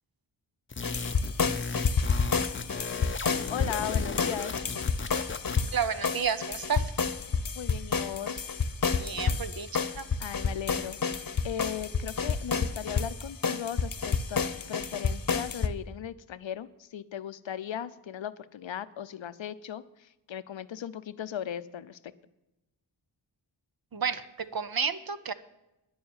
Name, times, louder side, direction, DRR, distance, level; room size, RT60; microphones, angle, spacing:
sound 1, 0.7-5.8, left 4 dB, 25° left, 0.6 m, -37 dB
sound 2, 0.8-15.7, left 5 dB, 50° left, 0.9 m, -29 dB
voice 1, 3.5-4.5 7.6-8.6 10.2-11.0 11.4-14.4 14.7-22.0, left 9 dB, 85° left, 14 dB, 0.7 m, -37 dB
voice 2, 5.7-6.9 8.9-9.7 10.0-10.1 23.9-25.3, right 6 dB, 55° right, 13 dB, 0.8 m, -31 dB
10.0 x 7.2 x 9.3 m, 0.95 s
wide cardioid pair, 65°, 45 cm